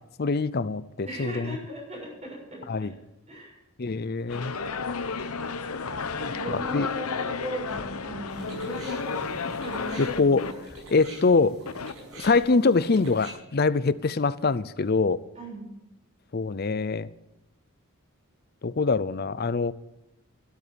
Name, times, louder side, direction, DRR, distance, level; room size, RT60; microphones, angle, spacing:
voice 1, 0.2-1.6 2.7-2.9 3.8-4.5 6.5-6.9 10.0-10.4 10.9-11.6 12.2-15.2 16.3-17.1 18.6-19.7, left 4 dB, 45° left, 0.5 m, -24 dB
voice 2, 1.0-2.7 3.3-3.6 6.1-10.4 15.3-15.7, right 1 dB, 30° right, 6.9 m, -38 dB
sound 1, 4.3-10.5 11.7-11.9, left 5 dB, 90° left, 0.9 m, -32 dB
sound 2, 8.3-13.3, right 1 dB, 80° right, 6.9 m, -45 dB
12.5 x 12.0 x 6.9 m
head